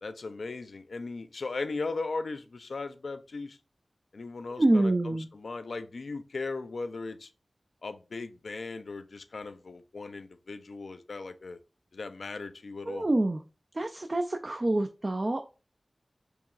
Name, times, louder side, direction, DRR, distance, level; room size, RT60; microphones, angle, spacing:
voice 1, 0.0-3.6 4.1-7.3 7.8-11.6 11.9-13.1, left 3 dB, 80° left, 0.4 m, -37 dB
voice 2, 4.6-5.3 12.9-13.4 13.8-15.4, right 2 dB, 40° right, 0.4 m, -26 dB
4.7 x 3.0 x 2.4 m
wide cardioid pair, 60°, 0 cm